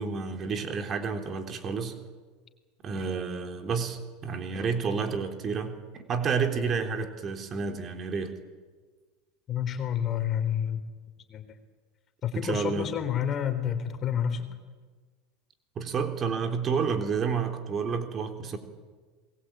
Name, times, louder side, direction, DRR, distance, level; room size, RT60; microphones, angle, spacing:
voice 1, 0.0-1.9 2.8-8.3 12.3-12.9 15.8-18.6, right 5 dB, 35° right, 6 dB, 3.6 m, -30 dB
voice 2, 9.5-10.8 11.3-11.6 12.2-14.5, left 9 dB, 35° left, 9 dB, 3.8 m, -29 dB
28.0 x 20.5 x 8.9 m, 1.4 s
hypercardioid pair, 105°, 0 cm